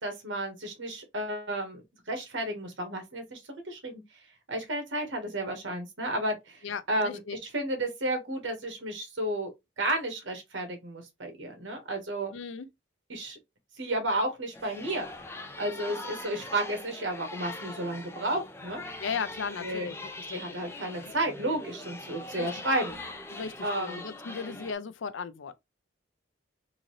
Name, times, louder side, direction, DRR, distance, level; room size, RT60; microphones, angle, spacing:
voice 1, 0.0-4.0 4.5-6.6 6.9-9.5 9.8-12.3 13.1-13.4 13.8-15.1 15.6-18.8 19.6-19.9 20.3-23.0 23.6-24.1, right 1 dB, 70° right, 1.3 m, -32 dB
voice 2, 6.6-7.4 12.3-12.7 19.0-19.9 20.3-20.6 22.4-22.5 23.3-25.5, left 5 dB, 75° left, 0.5 m, -36 dB
sound 1, 14.5-24.7, left 2 dB, 15° left, 0.4 m, -42 dB
3.8 x 2.7 x 3.1 m
head